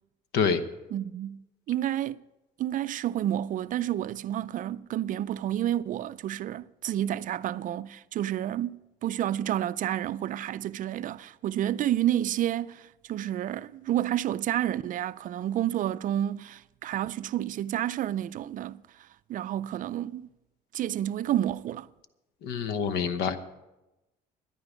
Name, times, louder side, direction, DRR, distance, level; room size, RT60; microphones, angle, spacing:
voice 1, 0.9-1.4 1.7-2.2 2.6-20.3 20.7-21.9, right 12 dB, 50° right, 0.4 m, -30 dB
voice 2, 22.4-23.4, left 6 dB, 85° left, 1.0 m, -26 dB
13.5 x 10.5 x 5.1 m
cardioid pair, 110°, 17 cm